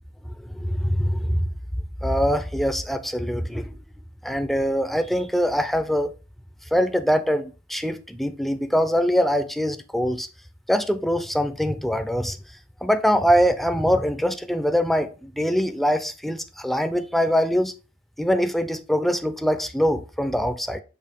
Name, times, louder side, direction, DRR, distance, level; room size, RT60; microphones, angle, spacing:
voice 1, 0.4-1.5 2.0-3.7 4.2-6.1 6.7-10.3 10.7-12.4 12.8-17.7 18.2-20.8, equal, ahead, 0.5 m, -23 dB
6.7 x 2.8 x 5.2 m
head